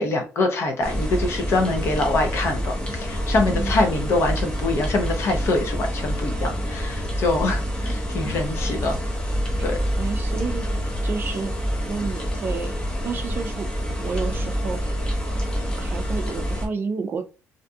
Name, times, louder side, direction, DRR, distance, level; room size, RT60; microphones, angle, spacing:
voice 1, 0.0-9.0 9.6-9.8, left 2 dB, 55° left, 0.7 m, -24 dB
sound 1, 0.8-16.7, equal, 20° left, 0.7 m, -27 dB
voice 2, 3.4-3.8 9.6-9.7 9.9-10.7 11.0-11.5 11.8-12.8 13.0-13.7 14.0-14.9 15.7-17.2, right 5 dB, 40° right, 0.3 m, -30 dB
2.5 x 2.3 x 2.6 m
cardioid pair, 135°, 5 cm